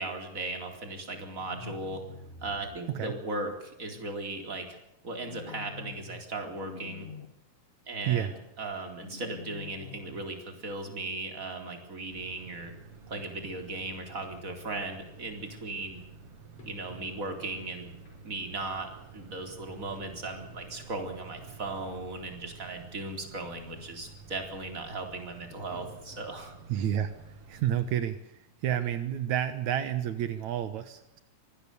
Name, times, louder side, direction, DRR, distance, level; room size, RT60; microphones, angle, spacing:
voice 1, 0.0-2.0 2.4-4.8 5.0-7.1 7.9-12.7 13.1-16.0 16.7-17.9 18.2-26.6, right 2 dB, 25° right, 4 dB, 4.3 m, -37 dB
sound 1, 1.4-2.8 5.1-6.2 6.5-7.3 9.0-10.2, left 4 dB, 25° left, 1.8 m, -45 dB
sound 2, 12.1-28.0, right 4 dB, 55° right, 2.8 m, -50 dB
sound 3, 15.7-15.8 16.6-17.5 18.0-18.5 19.0-19.1 20.0-20.1 20.3-20.4 21.3-21.4 21.7-21.8 22.0-22.1 22.3-22.8 23.3-23.4 25.5-26.8 27.2-27.4 27.9-28.0, left 2 dB, 55° left, 6.8 m, -53 dB
voice 2, 26.7-27.1 27.5-28.2 28.6-31.2, right 10 dB, 80° right, 10 dB, 2.5 m, -29 dB
25.0 x 19.5 x 6.9 m, 0.84 s
omnidirectional pair, 3.3 m